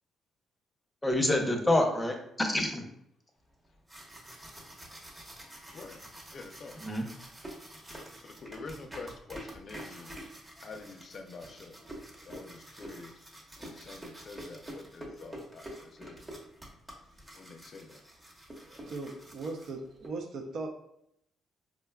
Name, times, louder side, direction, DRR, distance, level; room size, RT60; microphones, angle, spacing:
voice 1, 1.0-2.8 6.8-7.1, left 1 dB, 10° left, 3 dB, 0.7 m, -27 dB
sound 1, 3.6-20.1, right 1 dB, 15° right, 0.9 m, -47 dB
voice 2, 5.4-6.0 6.3-6.8 8.2-10.2 10.6-11.8 12.2-13.1 13.6-16.2 17.3-18.0, left 4 dB, 50° left, 6 dB, 0.5 m, -47 dB
voice 3, 18.9-20.7, right 3 dB, 70° right, 1 dB, 0.5 m, -38 dB
4.8 x 2.2 x 2.2 m, 0.76 s
cardioid pair, 90°, 0 cm